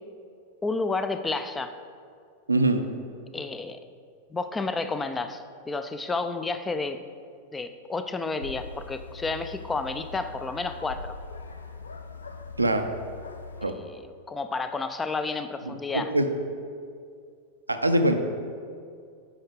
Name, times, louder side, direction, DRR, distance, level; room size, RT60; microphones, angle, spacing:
voice 1, 0.6-1.7 3.3-3.8 4.3-7.0 7.5-11.2 13.6-14.0 14.3-16.1, left 3 dB, 15° left, 9 dB, 0.4 m, -31 dB
voice 2, 2.5-2.8 12.6-12.8 13.6-13.7 15.7-16.3 17.7-18.1, right 1 dB, 80° right, 6 dB, 0.5 m, -23 dB
sound 1, 8.4-13.7, left 4 dB, 75° left, 0.4 m, -41 dB
9.6 x 5.6 x 3.5 m, 2.3 s
figure-of-eight pair, 90°, 0 cm